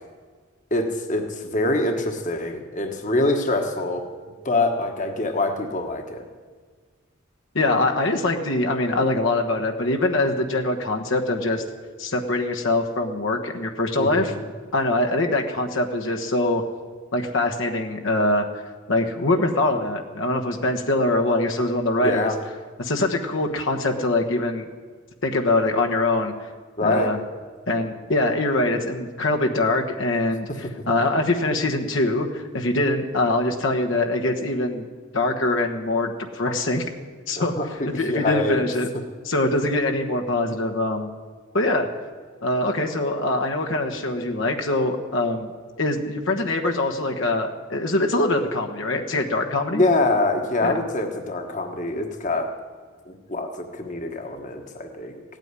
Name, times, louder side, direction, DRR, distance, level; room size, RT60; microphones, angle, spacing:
voice 1, 0.7-4.0 4.4-6.3 14.0-14.4 22.0-22.3 26.8-27.1 37.4-38.6 49.7-52.5 53.1-55.2, left 2 dB, 35° left, 5 dB, 1.4 m, -25 dB
voice 2, 7.5-11.6 12.0-14.3 14.7-16.6 17.1-18.5 18.9-22.3 22.8-24.7 25.2-26.5 26.8-27.2 27.7-34.9 35.1-36.8 37.3-38.9 39.2-41.1 41.5-41.9 42.4-49.8 50.6-50.8, left 2 dB, 65° left, 3 dB, 1.3 m, -23 dB
16.0 x 9.0 x 9.7 m, 1.5 s
head